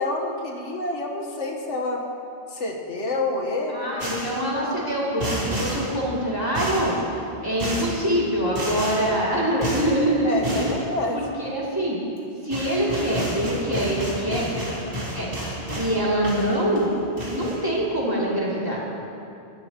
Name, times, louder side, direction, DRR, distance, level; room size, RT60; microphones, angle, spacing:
voice 1, 0.0-2.0 2.5-4.2 10.2-11.2, left 2 dB, 85° left, 0 dB, 1.6 m, -28 dB
voice 2, 3.7-7.0 7.4-10.7 11.1-12.0 12.4-14.4 15.1-15.3 15.7-16.9 17.2-18.8, right 1 dB, 20° right, -6 dB, 2.6 m, -24 dB
sound 1, 4.0-4.4 5.2-5.9 6.6-7.0 7.6-8.0 8.6-9.1 9.6-9.9 10.4-10.8 12.2-12.3 12.5-16.0 16.2-16.9 17.2-17.6, right 1 dB, 55° right, 2.7 m, -30 dB
20.5 x 12.0 x 2.9 m, 2.7 s
omnidirectional pair, 1.2 m